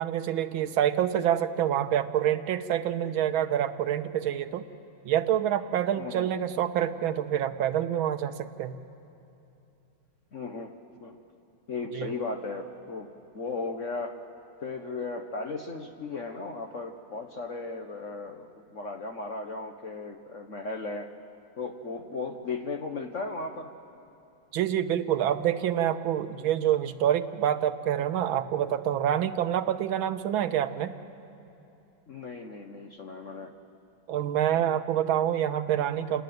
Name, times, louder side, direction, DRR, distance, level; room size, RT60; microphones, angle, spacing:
voice 1, 0.0-4.7 5.0-8.8 11.9-12.1 24.5-30.9 34.1-36.2, right 10 dB, 80° right, 10 dB, 1.7 m, -27 dB
voice 2, 6.0-6.3 10.3-10.7 11.0-11.2 11.7-13.1 13.3-14.2 14.6-21.1 21.6-23.7 32.1-33.5, left 3 dB, 50° left, 5 dB, 1.1 m, -36 dB
28.0 x 18.5 x 9.3 m, 2.9 s
omnidirectional pair, 2.2 m